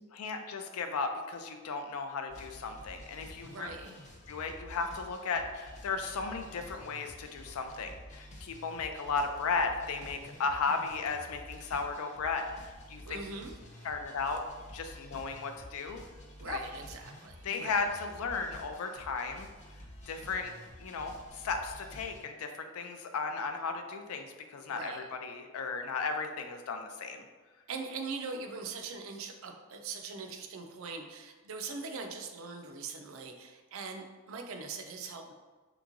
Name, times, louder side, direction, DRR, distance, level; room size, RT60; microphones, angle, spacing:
voice 1, 0.1-3.7 4.3-13.2 13.8-14.4 14.7-16.0 16.4-16.6 17.4-19.5 20.1-20.5 20.8-27.2, left 4 dB, 90° left, 6 dB, 0.4 m, -35 dB
sound 1, 2.3-22.2, left 1 dB, 30° left, 0.5 m, -50 dB
voice 2, 3.4-4.0 13.0-13.6 16.4-17.9 24.6-25.1 27.7-35.3, right 4 dB, 70° right, 4 dB, 0.4 m, -42 dB
3.4 x 2.9 x 2.5 m, 1.3 s
head